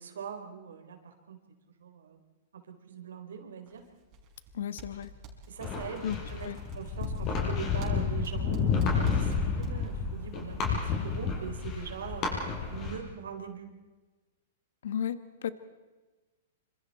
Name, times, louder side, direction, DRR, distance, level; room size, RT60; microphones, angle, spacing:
voice 1, 0.0-1.4 1.8-2.2 2.5-3.8 5.5-13.7, right 7 dB, 85° right, 5 dB, 4.5 m, -42 dB
sound 1, 3.7-4.5 4.8-10.0, right 4 dB, 35° right, 5.3 m, -47 dB
voice 2, 4.5-5.1 6.0-6.2 6.4-6.6 14.8-15.5, left 9 dB, 75° left, 12 dB, 1.3 m, -33 dB
sound 2, 5.6-13.0, left 5 dB, 30° left, 6.0 m, -30 dB
27.0 x 26.0 x 4.4 m, 1.2 s
hypercardioid pair, 140°, 0 cm